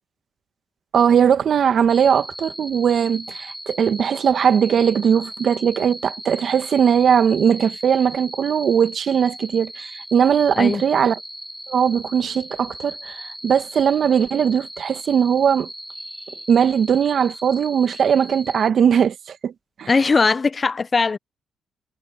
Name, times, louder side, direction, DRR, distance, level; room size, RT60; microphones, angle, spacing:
voice 1, 0.9-11.2 11.7-15.7 16.5-19.5 19.8-19.9, right 8 dB, 60° right, 1.7 m, -19 dB
sound 1, 1.9-18.7, equal, 5° right, 6.5 m, -38 dB
voice 2, 19.9-21.2, left 4 dB, 35° left, 0.6 m, -19 dB
supercardioid pair, 60°, 0 cm